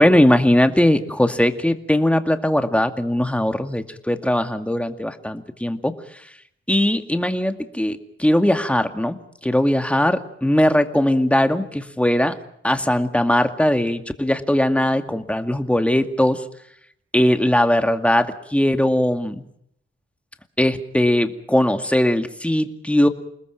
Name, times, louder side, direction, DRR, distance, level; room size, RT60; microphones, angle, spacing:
voice 1, 0.0-6.0 6.7-9.2 9.4-12.4 12.6-16.4 17.1-19.4 20.6-23.1, left 1 dB, 5° left, 7 dB, 2.2 m, -19 dB
29.0 x 20.0 x 5.9 m, 0.72 s
wide cardioid pair, 90°, 21 cm